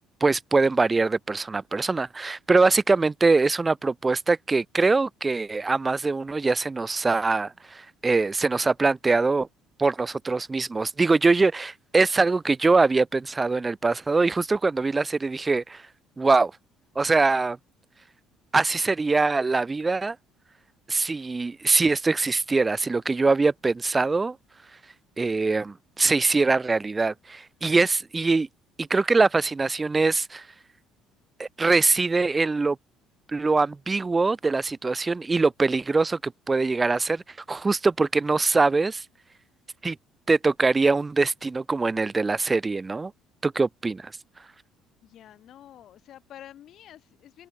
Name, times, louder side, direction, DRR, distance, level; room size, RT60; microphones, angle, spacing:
voice 1, 0.2-9.5 9.8-15.8 16.2-16.5 17.0-17.6 18.5-20.2 20.9-24.4 25.2-28.5 28.8-30.5 31.4-32.8 33.3-37.2 37.5-39.0 39.8-40.0 40.3-43.1 43.4-44.1, right 3 dB, 20° right, 0.4 m, -23 dB
voice 2, 45.0-47.5, left 11 dB, 50° left, 4.7 m, -48 dB
open air
figure-of-eight pair, 55°, 0 cm